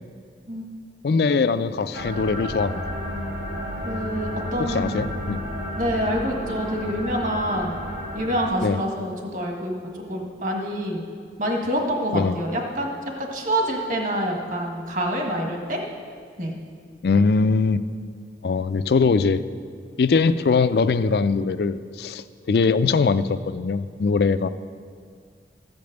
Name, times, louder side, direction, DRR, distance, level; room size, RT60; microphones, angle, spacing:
voice 1, 1.0-2.8 4.6-5.4 8.6-8.8 12.1-12.4 17.0-17.8 18.4-19.4 20.0-24.5, left 4 dB, 65° left, 13 dB, 0.4 m, -21 dB
sound 1, 1.9-8.5, left 1 dB, 70° right, 2.2 m, -31 dB
voice 2, 3.8-5.1 5.8-7.7 8.1-11.0 11.4-12.9 13.2-15.8 16.4-16.6, equal, 45° right, 1 dB, 1.5 m, -26 dB
14.0 x 5.2 x 7.8 m, 2.1 s
head